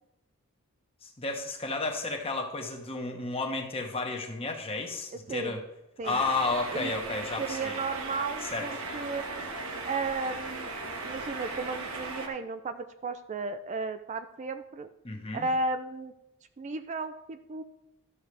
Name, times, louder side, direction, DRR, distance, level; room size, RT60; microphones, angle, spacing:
voice 1, 1.0-5.6 6.0-7.8 8.5-8.7 15.0-15.5, left 3 dB, 25° left, 3 dB, 1.2 m, -32 dB
voice 2, 5.1-5.6 6.0-6.2 6.7-6.9 7.4-9.4 9.8-14.9 15.3-16.1 16.6-17.6, right 3 dB, 30° right, 9 dB, 0.4 m, -34 dB
sound 1, 6.0-12.3, right 3 dB, 65° right, 1.3 m, -37 dB
12.5 x 6.4 x 3.3 m, 0.90 s
head